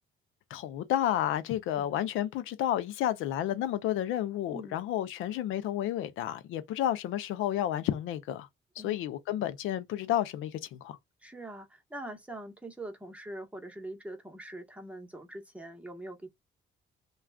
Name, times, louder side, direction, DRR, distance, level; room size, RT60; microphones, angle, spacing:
voice 1, 0.5-8.5 8.8-11.0, left 11 dB, 85° left, 0.5 m, -31 dB
voice 2, 4.5-4.8 8.8-9.0 11.2-16.3, right 1 dB, 5° right, 1.0 m, -43 dB
2.3 x 2.3 x 3.3 m
cardioid pair, 90°, 20 cm